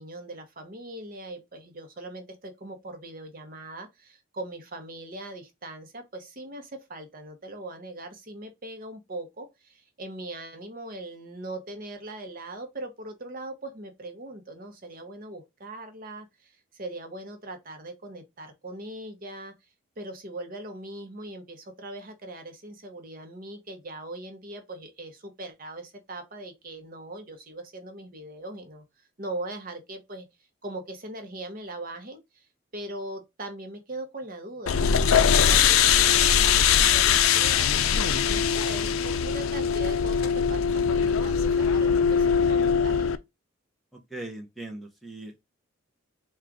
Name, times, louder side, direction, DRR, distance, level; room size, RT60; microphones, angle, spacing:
voice 1, 0.0-19.5 20.0-28.8 29.2-30.3 30.6-32.5 32.7-43.2, right 1 dB, 40° right, 0.8 m, -40 dB
sound 1, 34.7-43.2, left 7 dB, 80° left, 0.4 m, -21 dB
voice 2, 43.9-45.4, right 2 dB, ahead, 0.7 m, -40 dB
3.7 x 2.4 x 4.6 m
head